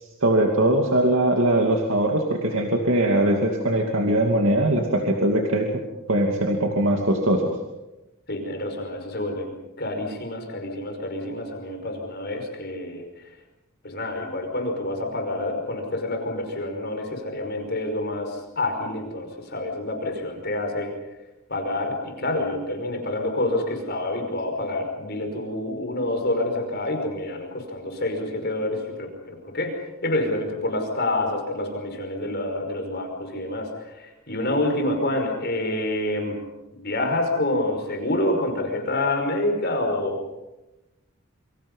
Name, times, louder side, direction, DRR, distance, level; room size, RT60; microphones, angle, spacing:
voice 1, 0.2-5.7 6.1-7.4, right 1 dB, 65° right, 2 dB, 2.6 m, -21 dB
voice 2, 8.3-9.5 9.8-13.0 13.8-20.9 21.5-36.4 36.7-40.2, left 1 dB, 50° left, 3 dB, 5.4 m, -27 dB
28.0 x 25.5 x 5.6 m, 1.0 s
head